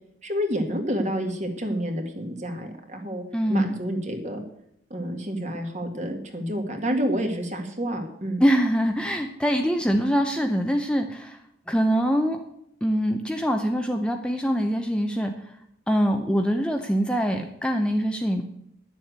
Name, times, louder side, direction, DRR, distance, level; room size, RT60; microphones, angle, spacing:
voice 1, 0.2-3.2 3.5-4.4 4.9-8.4, equal, 40° right, 4 dB, 1.9 m, -29 dB
voice 2, 3.3-3.8 8.4-11.4 11.7-12.4 12.8-15.3 15.9-18.4, equal, 5° left, 4 dB, 0.7 m, -24 dB
11.0 x 7.3 x 8.0 m, 0.74 s
head